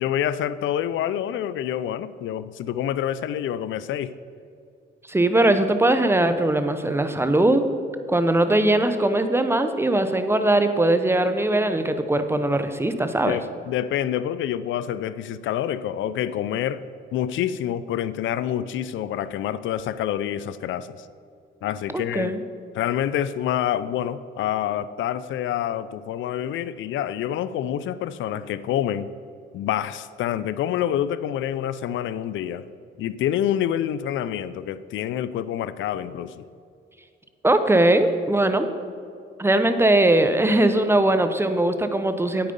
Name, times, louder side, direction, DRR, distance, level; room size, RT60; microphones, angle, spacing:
voice 1, 0.0-4.1 13.3-16.8 17.1-21.0 21.6-22.4 22.7-29.1 29.5-32.6 33.0-36.4, left 10 dB, 75° left, 15 dB, 0.5 m, -27 dB
voice 2, 5.1-7.6 8.1-13.4 21.9-22.4 37.4-38.7 39.4-42.5, right 1 dB, 10° right, 9 dB, 0.8 m, -20 dB
9.3 x 8.7 x 5.3 m, 2.4 s
cardioid pair, 90°, 20 cm